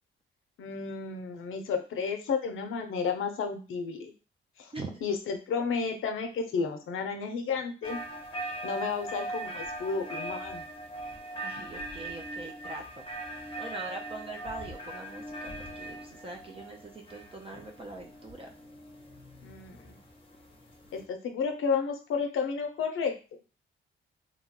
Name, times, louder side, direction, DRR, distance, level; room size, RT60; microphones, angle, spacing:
voice 1, 0.6-4.1 4.6-4.7 5.0-8.0 8.6-10.6 19.4-20.0 20.9-23.1, left 5 dB, 80° left, 5 dB, 0.5 m, -32 dB
voice 2, 4.7-5.0 6.6-6.9 11.4-13.1 13.6-15.5 15.8-18.5, right 2 dB, 25° right, 2 dB, 0.5 m, -42 dB
sound 1, 7.8-21.0, right 1 dB, 25° left, 0.7 m, -41 dB
2.9 x 2.2 x 2.8 m, 0.33 s
cardioid pair, 115°, 21 cm